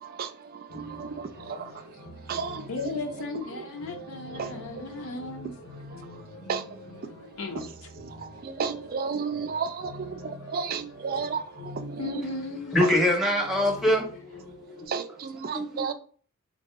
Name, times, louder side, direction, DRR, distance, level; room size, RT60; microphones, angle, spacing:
voice 1, 0.0-1.7 2.3-2.7 3.9-4.0 4.3-4.5 5.0-5.1 5.9-6.1 6.5-6.8 7.6-7.7 8.0-12.0 14.9-15.9, right 5 dB, 40° right, 0.3 m, -33 dB
sound 1, 0.7-14.9, left 2 dB, 85° left, 0.9 m, -46 dB
voice 2, 2.7-5.6 7.4-7.7 12.0-12.9, left 3 dB, 65° left, 0.5 m, -35 dB
voice 3, 12.7-14.1 15.5-15.9, left 1 dB, ahead, 0.8 m, -23 dB
3.9 x 2.6 x 3.5 m
head